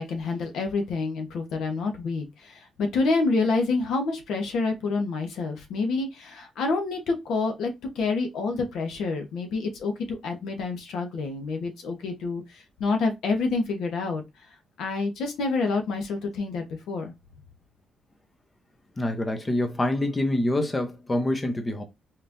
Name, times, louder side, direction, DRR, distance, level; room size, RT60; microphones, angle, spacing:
voice 1, 0.0-7.7 7.9-14.2 14.8-17.1, left 3 dB, 80° left, 1.2 m, -28 dB
voice 2, 19.0-21.8, left 1 dB, 20° left, 0.9 m, -26 dB
4.3 x 3.6 x 2.7 m
cardioid pair, 90°, 0 cm